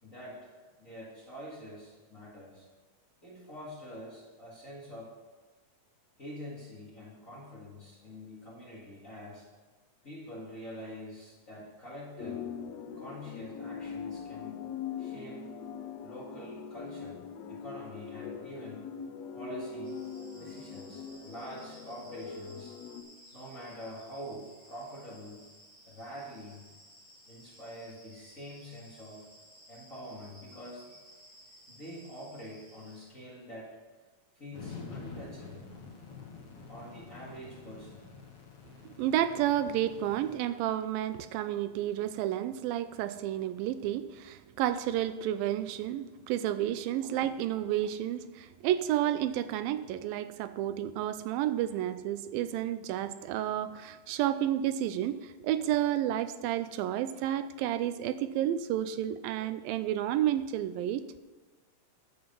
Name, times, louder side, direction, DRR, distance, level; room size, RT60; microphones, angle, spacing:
voice 1, 0.0-0.5 0.8-2.7 3.2-5.2 6.2-9.5 10.0-12.5 12.9-14.6 15.0-15.5 16.0-18.8 19.3-20.0 20.3-22.7 23.3-25.5 25.8-26.7 27.2-29.3 29.7-30.9 31.7-33.9 34.3-35.8 36.7-38.1 46.9-47.2, equal, 30° left, -6 dB, 1.7 m, -46 dB
sound 1, 12.2-23.0, left 6 dB, 75° left, 1.6 m, -42 dB
sound 2, 19.8-33.1, equal, 25° right, 3.9 m, -57 dB
sound 3, 34.5-40.4, left 5 dB, 50° left, 2.3 m, -47 dB
voice 2, 38.9-61.2, right 12 dB, 85° right, 12 dB, 2.3 m, -31 dB
9.7 x 7.8 x 5.3 m, 1.3 s
omnidirectional pair, 4.1 m